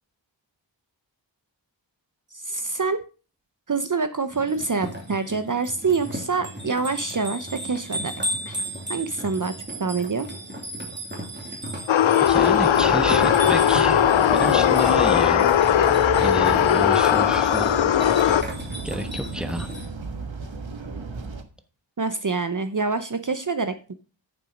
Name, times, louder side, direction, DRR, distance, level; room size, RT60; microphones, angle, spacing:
voice 1, 2.3-3.0 3.7-8.1 8.5-8.6 8.9-10.3 22.0-23.9, right 4 dB, 40° right, 10 dB, 0.8 m, -26 dB
sound 1, 4.3-19.9, right 1 dB, 25° right, 3.0 m, -35 dB
sound 2, 11.9-18.4, left 10 dB, 80° left, 0.6 m, -19 dB
sound 3, 12.2-21.4, right 3 dB, 80° right, 1.4 m, -33 dB
voice 2, 12.3-14.0 14.3-15.5 16.2-17.7 18.8-19.7, right 1 dB, ahead, 9 dB, 1.2 m, -29 dB
9.1 x 7.1 x 5.0 m, 0.34 s
wide cardioid pair, 70°, 46 cm